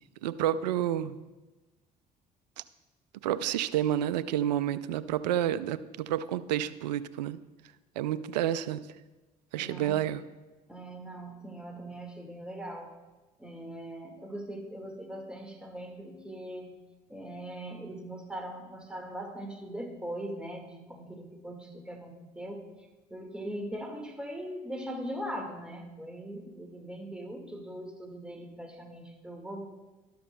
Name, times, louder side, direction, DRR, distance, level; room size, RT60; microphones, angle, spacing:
voice 1, 0.2-1.2 3.2-7.4 8.0-8.8 9.5-10.2, right 11 dB, 80° right, 15 dB, 0.4 m, -29 dB
voice 2, 9.5-10.0 10.7-13.0 13.4-16.7 17.1-29.7, right 1 dB, 5° right, 2 dB, 1.8 m, -40 dB
12.5 x 12.0 x 2.3 m, 1.2 s
hypercardioid pair, 60°, 21 cm